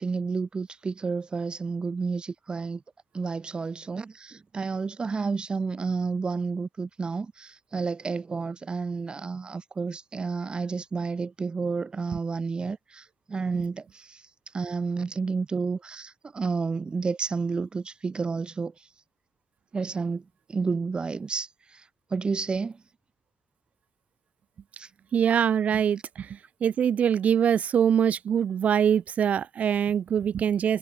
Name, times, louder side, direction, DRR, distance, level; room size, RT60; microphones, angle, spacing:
voice 1, 0.0-2.8 3.1-14.3 14.5-18.9 19.7-20.2 20.5-22.8 24.8-24.9, right 4 dB, 40° right, 2.8 m, -31 dB
voice 2, 25.1-26.3 26.6-30.8, right 8 dB, 70° right, 0.4 m, -23 dB
wide cardioid pair, 110°, 3 cm